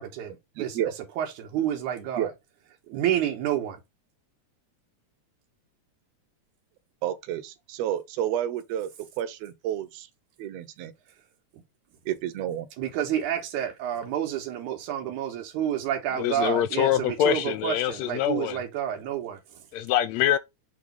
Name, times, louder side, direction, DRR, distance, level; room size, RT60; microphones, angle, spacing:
voice 1, 0.0-2.3 2.9-3.8 12.8-19.6, right 10 dB, 90° right, 2.5 m, -29 dB
voice 2, 0.6-0.9 2.2-2.3 7.0-8.9 9.2-10.1 10.4-10.9 12.1-12.7, right 11 dB, 70° right, 1.8 m, -30 dB
voice 3, 16.2-18.6 19.7-20.4, left 11 dB, 80° left, 1.6 m, -24 dB
6.5 x 3.0 x 5.1 m
omnidirectional pair, 3.4 m